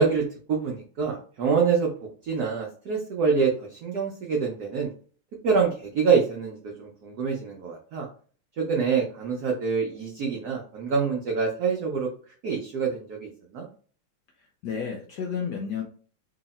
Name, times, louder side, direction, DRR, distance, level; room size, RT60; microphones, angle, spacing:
voice 1, 0.0-1.9 2.2-4.9 5.4-8.1 8.6-12.1 12.4-13.7, right 5 dB, 70° right, -1 dB, 0.9 m, -26 dB
voice 2, 14.4-15.8, left 6 dB, 75° left, 1 dB, 0.9 m, -32 dB
3.1 x 2.8 x 4.1 m, 0.43 s
omnidirectional pair, 2.3 m